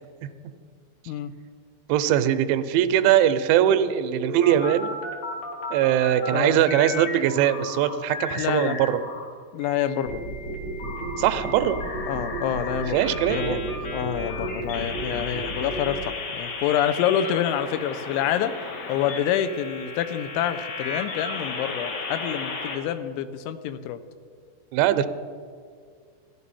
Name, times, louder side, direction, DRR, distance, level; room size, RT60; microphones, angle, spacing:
voice 1, 1.9-4.9 5.7-9.0 11.2-11.8 12.9-13.6 24.7-25.1, right 11 dB, 85° right, 11 dB, 2.8 m, -21 dB
sound 1, 3.7-6.3 6.6-9.2 9.6-22.8, left 3 dB, 70° left, 1.6 m, -35 dB
voice 2, 8.4-8.8 9.5-10.3 12.1-13.0 13.3-18.5 18.9-24.0, left 10 dB, 85° left, 11 dB, 3.0 m, -27 dB
sound 2, 10.0-16.0, right 2 dB, 45° left, 1.3 m, -33 dB
15.0 x 11.0 x 4.2 m, 2.1 s
omnidirectional pair, 5.4 m